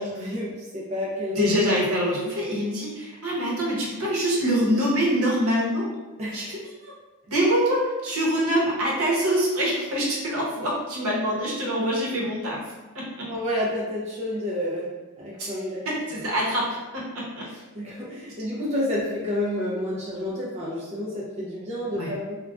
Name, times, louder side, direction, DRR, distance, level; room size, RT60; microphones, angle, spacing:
voice 1, 0.0-1.6 6.2-6.5 13.3-14.9 15.2-15.9 16.1-16.2 17.4-22.3, left 1 dB, 30° right, -6 dB, 0.5 m, -30 dB
voice 2, 1.4-5.9 6.3-6.9 7.3-12.6 12.9-13.3 15.4-15.5 15.9-17.5 21.9-22.1, equal, 70° right, -5 dB, 0.9 m, -25 dB
3.4 x 2.2 x 2.4 m, 1.2 s
head